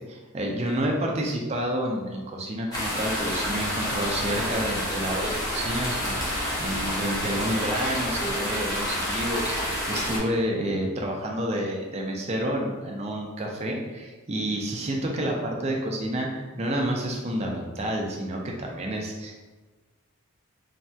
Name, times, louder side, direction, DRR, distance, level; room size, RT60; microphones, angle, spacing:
voice 1, 0.1-19.4, right 1 dB, 30° right, 0 dB, 0.4 m, -29 dB
sound 1, 2.7-10.2, equal, 15° left, 0.6 m, -29 dB
3.2 x 2.7 x 2.2 m, 1.3 s
head